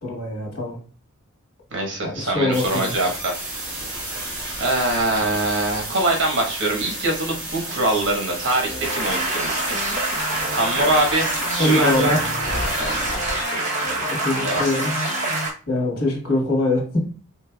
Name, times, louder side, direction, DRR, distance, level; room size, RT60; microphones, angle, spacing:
voice 1, 0.0-0.8 2.0-2.9 11.6-12.2 14.1-14.9 15.7-17.1, left 1 dB, 75° left, -1 dB, 1.8 m, -22 dB
voice 2, 1.7-3.9 4.6-12.3 12.7-13.2 13.5-13.8 14.4-14.6, right 2 dB, 55° right, 0 dB, 1.2 m, -24 dB
sound 1, 2.5-13.4, right 1 dB, 5° right, 1.7 m, -32 dB
sound 2, 8.6-15.5, left 2 dB, 55° left, 0.8 m, -32 dB
sound 3, 8.8-15.5, right 2 dB, 30° right, 0.9 m, -26 dB
4.4 x 3.2 x 2.3 m, 0.39 s
head